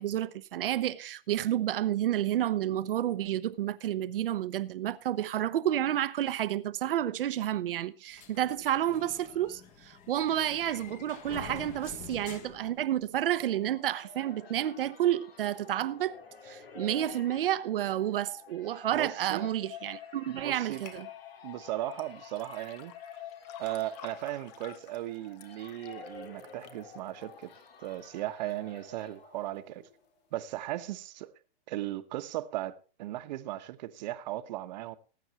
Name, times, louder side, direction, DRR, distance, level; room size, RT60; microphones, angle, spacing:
voice 1, 0.0-16.1 16.4-21.1, right 12 dB, 70° right, 1.0 m, -30 dB
sound 1, 8.2-13.4, left 6 dB, 25° left, 1.5 m, -47 dB
sound 2, 13.1-30.1, left 7 dB, 90° left, 2.6 m, -49 dB
voice 2, 18.9-19.5 20.3-20.8 21.4-22.9 23.6-27.5 27.8-29.8 30.3-31.3 31.7-35.0, right 15 dB, 50° right, 1.2 m, -37 dB
sound 3, 20.9-21.0 21.9-28.0 28.5-29.0 29.5-29.6, left 10 dB, 45° left, 1.4 m, -53 dB
19.5 x 8.9 x 3.0 m
hypercardioid pair, 140°, 29 cm